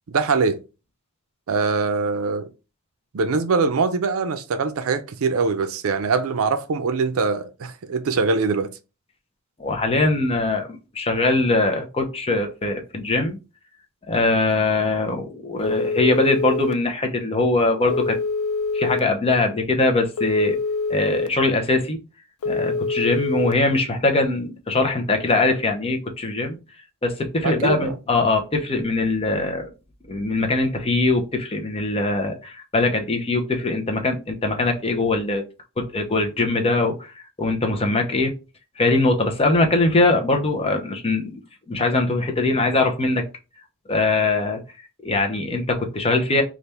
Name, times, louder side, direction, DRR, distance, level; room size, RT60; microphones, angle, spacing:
voice 1, 0.1-0.6 1.5-2.5 3.1-8.7 27.4-28.0, right 4 dB, 75° right, 0.5 m, -23 dB
voice 2, 9.6-13.4 14.1-18.2 18.7-20.6 20.9-22.0 22.5-26.6 27.0-29.7 30.1-35.4 35.8-37.1 37.4-38.3 38.8-41.4 41.7-43.3 43.9-44.6 45.0-46.4, left 2 dB, 25° left, 0.7 m, -22 dB
Telephone, 15.6-16.7 17.9-19.0 20.2-21.3 22.4-23.5, left 3 dB, 80° left, 0.5 m, -25 dB
3.4 x 2.4 x 4.2 m
head